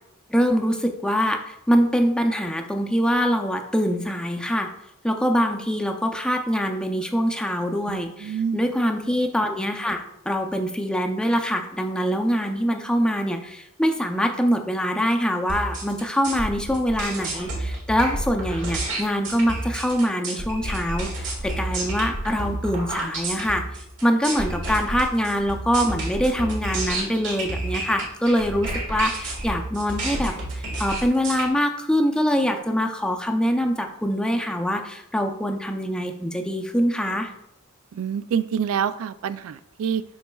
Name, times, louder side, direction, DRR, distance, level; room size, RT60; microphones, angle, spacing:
voice 1, 0.3-4.7 5.0-23.6 24.0-37.3, equal, 5° left, 3 dB, 0.5 m, -24 dB
voice 2, 7.9-8.6 37.9-40.0, right 7 dB, 75° right, 14 dB, 0.3 m, -27 dB
sound 1, 15.5-31.4, right 1 dB, 60° right, 1.6 m, -30 dB
11.5 x 4.2 x 2.3 m, 0.81 s
head